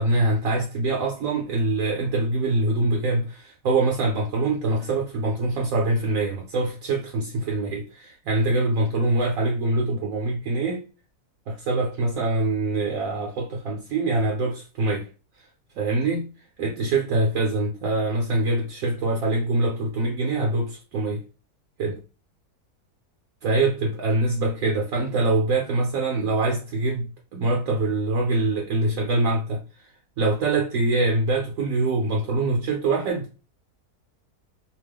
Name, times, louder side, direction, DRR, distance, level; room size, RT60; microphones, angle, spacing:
voice 1, 0.0-10.8 11.5-15.1 15.8-16.3 16.6-21.2 21.8-22.0 23.4-29.6 30.2-33.3, right 2 dB, 70° right, 0.9 m, -24 dB
2.9 x 2.0 x 3.3 m
omnidirectional pair, 1.7 m